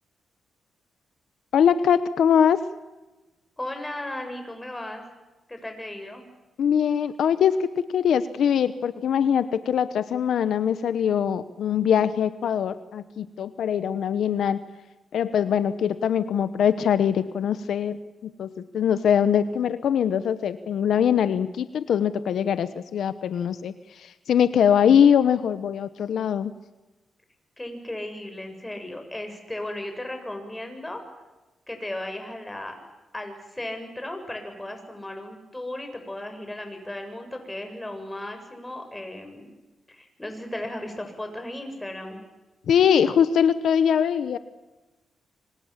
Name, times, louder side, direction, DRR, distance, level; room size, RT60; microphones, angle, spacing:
voice 1, 1.5-2.6 6.6-14.6 15.1-18.0 18.2-18.5 18.7-26.5 42.7-44.4, left 8 dB, 80° left, 13 dB, 1.0 m, -22 dB
voice 2, 3.6-5.0 5.5-6.3 27.6-31.0 31.7-32.8 33.1-39.5 39.9-42.2, left 1 dB, 15° left, 5 dB, 7.2 m, -35 dB
26.5 x 26.0 x 7.5 m, 1.1 s
cardioid pair, 70°, 0 cm